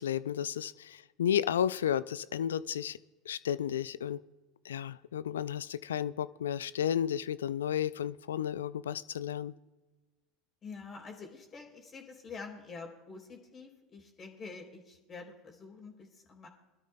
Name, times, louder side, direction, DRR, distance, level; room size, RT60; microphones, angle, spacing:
voice 1, 0.0-3.0 3.3-4.2 4.6-9.5, left 9 dB, 80° left, 18 dB, 0.4 m, -32 dB
voice 2, 10.6-16.5, left 4 dB, 35° left, 2 dB, 3.2 m, -47 dB
23.0 x 12.5 x 2.2 m, 1.2 s
hypercardioid pair, 80°, 0 cm